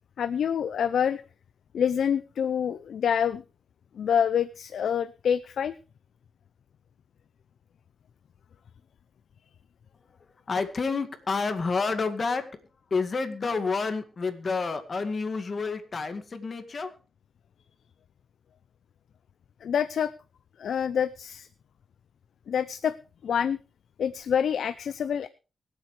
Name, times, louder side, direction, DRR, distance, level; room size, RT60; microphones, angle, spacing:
voice 1, 0.2-1.2 1.7-3.4 4.0-5.7 19.6-20.1 20.6-21.5 22.5-23.0 23.2-23.6 24.0-25.3, left 8 dB, 80° left, 14 dB, 0.5 m, -26 dB
voice 2, 10.5-12.5 12.9-16.9, left 4 dB, 45° left, 8 dB, 2.1 m, -29 dB
24.0 x 8.3 x 3.3 m, 0.33 s
cardioid pair, 80°, 0 cm